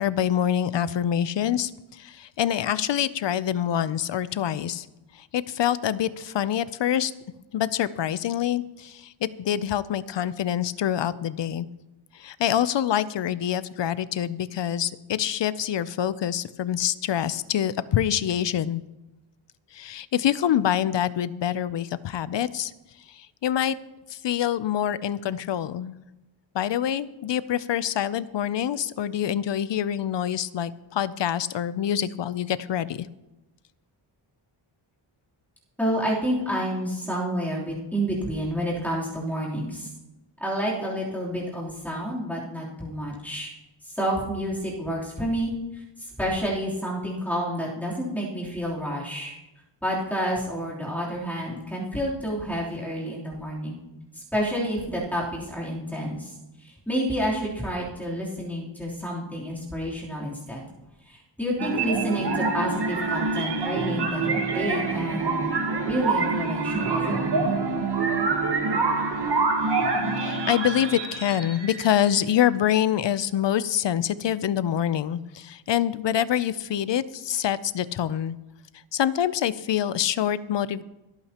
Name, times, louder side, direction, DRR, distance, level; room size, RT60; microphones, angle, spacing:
voice 1, 0.0-4.9 5.1-7.1 7.5-11.7 12.1-18.8 19.7-22.7 23.1-23.7 24.1-25.9 26.5-33.1 70.2-78.4 78.9-80.8, left 10 dB, 60° left, 16 dB, 0.5 m, -26 dB
voice 2, 35.8-39.9 40.4-43.5 43.8-49.3 49.8-53.8 54.1-60.7 61.0-65.5 65.8-67.6, equal, 5° left, -6 dB, 3.2 m, -29 dB
sound 1, 61.6-72.2, right 4 dB, 55° right, 1.7 m, -26 dB
26.0 x 8.8 x 2.9 m, 1.0 s
wide cardioid pair, 175°, 49 cm